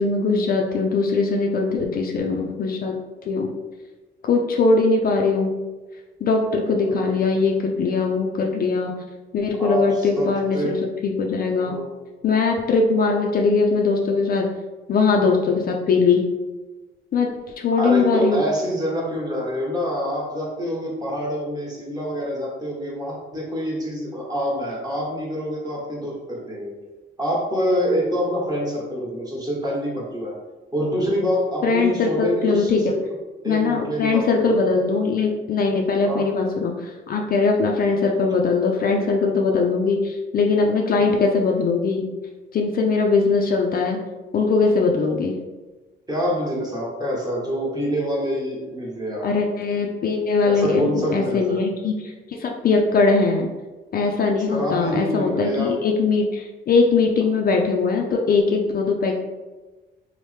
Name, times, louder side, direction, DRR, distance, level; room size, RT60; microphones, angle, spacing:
voice 1, 0.0-3.0 3.2-3.5 4.2-5.6 6.2-8.9 9.3-11.8 12.2-14.5 14.9-16.3 17.1-17.3 17.6-18.4 31.6-32.8 33.5-42.1 42.5-44.0 44.3-45.4 49.2-53.5 53.9-59.1, left 4 dB, 50° left, 1 dB, 0.4 m, -21 dB
voice 2, 6.6-7.2 9.6-10.7 11.7-11.9 15.5-15.6 17.8-26.7 27.2-30.3 30.7-33.0 33.4-34.6 36.1-36.3 41.0-41.2 46.1-49.5 50.5-51.6 54.5-55.8, equal, 20° right, -4 dB, 1.0 m, -26 dB
3.1 x 2.0 x 3.1 m, 1.2 s
cardioid pair, 90°, 20 cm